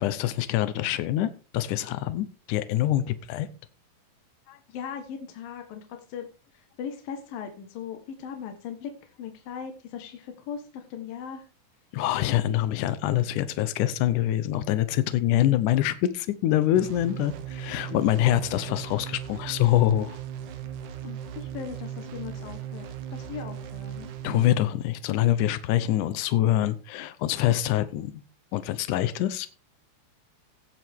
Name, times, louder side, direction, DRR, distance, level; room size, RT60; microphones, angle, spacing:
voice 1, 0.0-3.5 4.5-4.6 11.9-20.2 24.2-28.1 28.5-29.5, left 13 dB, 85° left, 1.8 m, -25 dB
voice 2, 4.7-6.3 6.8-8.9 9.2-11.4 17.9-18.0 21.0-24.1, left 7 dB, 65° left, 2.9 m, -38 dB
sound 1, 16.8-24.5, right 9 dB, 65° right, 2.1 m, -37 dB
17.0 x 7.7 x 3.6 m
omnidirectional pair, 4.6 m